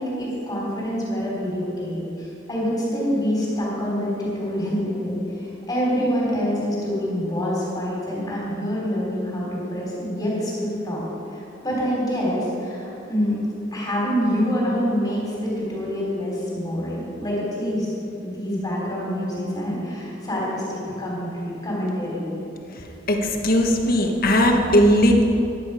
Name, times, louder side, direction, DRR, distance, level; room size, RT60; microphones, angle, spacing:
voice 1, 0.0-11.0 11.3-13.4 13.7-17.9 18.2-22.4, equal, 20° left, -5 dB, 3.4 m, -26 dB
voice 2, 23.1-25.2, equal, 50° left, 2 dB, 1.3 m, -18 dB
14.5 x 10.5 x 4.9 m, 2.8 s
head